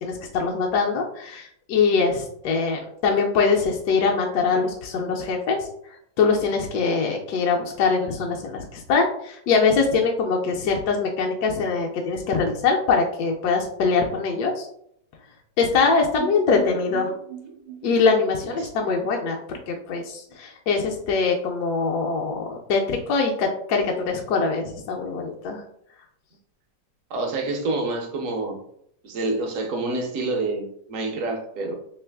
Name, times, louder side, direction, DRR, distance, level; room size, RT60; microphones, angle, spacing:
voice 1, 0.0-5.7 6.2-14.7 15.6-17.1 17.8-25.6, left 4 dB, 75° left, 0 dB, 1.1 m, -23 dB
sound 1, 16.2-20.0 20.3-20.4 20.7-20.8, right 9 dB, 80° right, 0.4 m, -40 dB
voice 2, 27.1-28.6 29.0-31.7, right 2 dB, 60° right, 3 dB, 0.9 m, -27 dB
3.1 x 2.8 x 3.4 m, 0.70 s
omnidirectional pair, 1.9 m